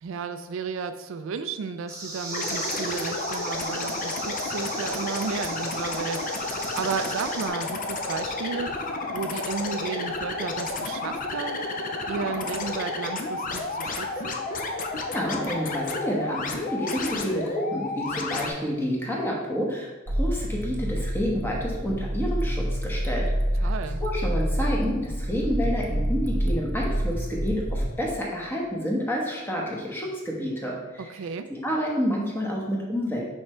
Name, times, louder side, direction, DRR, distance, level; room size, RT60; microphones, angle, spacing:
voice 1, 0.0-8.8 9.1-11.6 12.1-14.3 23.6-24.0 31.0-31.5, right 5 dB, 65° right, 9 dB, 0.3 m, -33 dB
sound 1, 1.9-7.5, right 2 dB, 15° right, 1.1 m, -36 dB
sound 2, 2.3-18.5, left 3 dB, 40° left, 0.5 m, -31 dB
voice 2, 15.1-23.7 24.0-31.0 31.6-33.3, equal, 10° left, -2 dB, 1.1 m, -29 dB
sound 3, 20.1-27.9, equal, 40° right, 0.7 m, -27 dB
5.7 x 5.5 x 3.3 m, 1.2 s
head